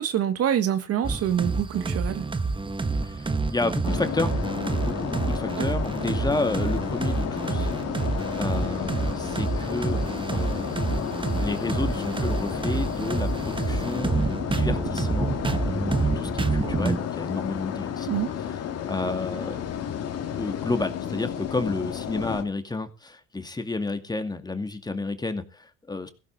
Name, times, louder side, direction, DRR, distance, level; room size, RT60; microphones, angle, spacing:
voice 1, 0.0-2.3 5.6-5.7 18.1-18.3, right 10 dB, 50° right, 1.5 m, -26 dB
sound 1, 1.0-17.0, right 3 dB, 15° right, 1.2 m, -28 dB
voice 2, 3.0-7.7 8.4-10.0 10.3-18.2 18.9-19.6 20.4-26.1, left 3 dB, 15° left, 2.3 m, -31 dB
sound 2, 3.8-22.4, left 9 dB, 55° left, 2.4 m, -32 dB
16.0 x 13.5 x 4.1 m
supercardioid pair, 90°, 30 cm